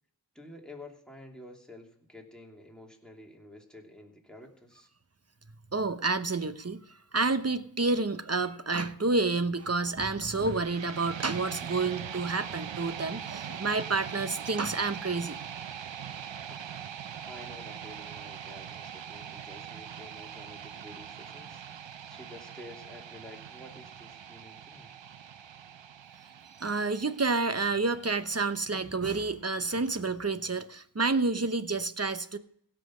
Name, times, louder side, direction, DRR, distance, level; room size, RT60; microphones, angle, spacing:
voice 1, 0.3-4.9 16.5-16.7 16.9-25.0, left 1 dB, ahead, 1 dB, 2.7 m, -50 dB
voice 2, 5.7-15.4 26.6-32.4, right 3 dB, 35° right, 11 dB, 0.9 m, -29 dB
sound 1, 10.4-28.4, right 8 dB, 75° right, 0.7 m, -42 dB
16.5 x 6.2 x 6.2 m, 0.67 s
wide cardioid pair, 40°, 45 cm